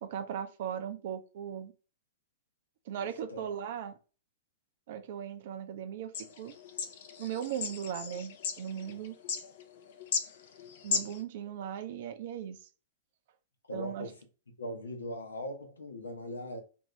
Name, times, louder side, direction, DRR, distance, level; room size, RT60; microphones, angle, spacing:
voice 1, 0.0-1.7 2.9-4.0 4.9-6.1 6.4-6.5 7.2-9.1 10.8-12.7 13.7-14.1, right 9 dB, 55° right, 0.5 m, -38 dB
voice 2, 2.9-3.4 13.7-14.1 14.6-16.6, left 1 dB, 80° left, 0.8 m, -40 dB
sound 1, 6.1-11.2, left 5 dB, 55° left, 0.5 m, -36 dB
2.6 x 2.6 x 3.2 m
figure-of-eight pair, 105°, 0 cm